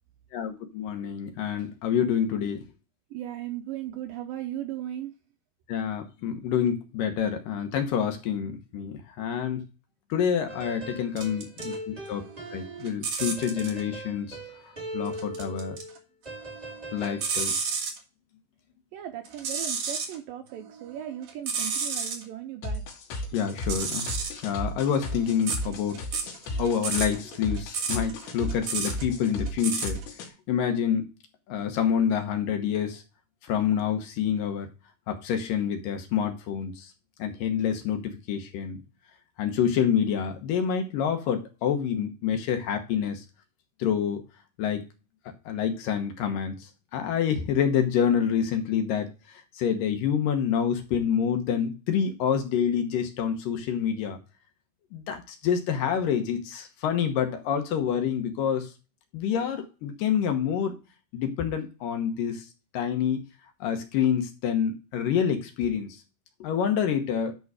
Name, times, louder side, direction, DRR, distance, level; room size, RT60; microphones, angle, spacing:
voice 1, 0.3-2.6 5.7-9.6 10.1-12.2 12.5-14.4 14.9-15.8 16.9-17.7 23.3-24.1 24.4-26.0 26.6-30.0 30.5-31.1 31.5-33.0 33.4-34.7 35.1-36.9 37.2-38.8 39.4-43.2 43.8-44.2 44.6-44.8 45.5-54.2 54.9-58.7 59.1-60.8 61.1-62.5 62.7-63.2 63.6-66.0 66.4-67.3, left 8 dB, 70° left, 6 dB, 2.3 m, -27 dB
voice 2, 3.1-5.1 18.9-22.8, right 12 dB, 80° right, 6 dB, 2.0 m, -37 dB
sound 1, 10.5-16.0 16.2-17.4, right 1 dB, 10° right, 2.1 m, -40 dB
sound 2, 11.2-11.8 12.1-13.8 15.1-16.0 16.3-18.0 19.2-20.2 20.6-22.2 23.5-30.0, right 5 dB, 55° right, 2.0 m, -32 dB
sound 3, 22.6-30.3, left 1 dB, 90° left, 3.9 m, -34 dB
10.5 x 4.0 x 4.8 m, 0.31 s
omnidirectional pair, 4.9 m